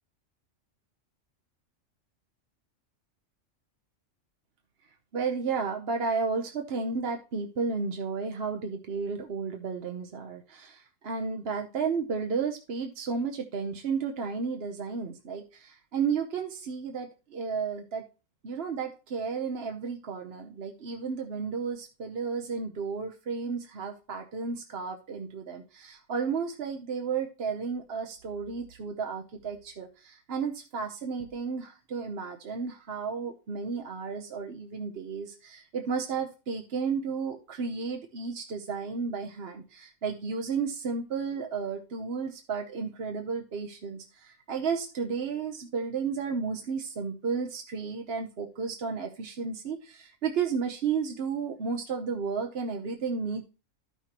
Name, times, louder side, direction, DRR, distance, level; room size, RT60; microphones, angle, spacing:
voice 1, 5.1-18.0 18.4-53.4, right 5 dB, 55° right, 4 dB, 1.0 m, -33 dB
13.0 x 5.8 x 2.9 m, 0.31 s
omnidirectional pair, 1.3 m